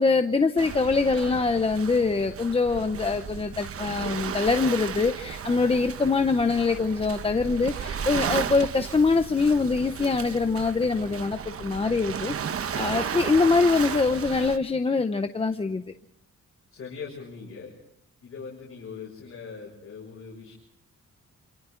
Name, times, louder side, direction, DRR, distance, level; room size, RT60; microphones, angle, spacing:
voice 1, 0.0-12.3 12.7-15.8, left 4 dB, 20° left, 7 dB, 0.7 m, -24 dB
Waves surf, 0.6-14.6, right 7 dB, 50° right, 1.0 m, -34 dB
voice 2, 16.7-17.7 18.2-20.5, left 5 dB, 50° left, -4 dB, 6.5 m, -41 dB
27.5 x 27.5 x 3.8 m, 0.76 s
wide cardioid pair, 175°, 29 cm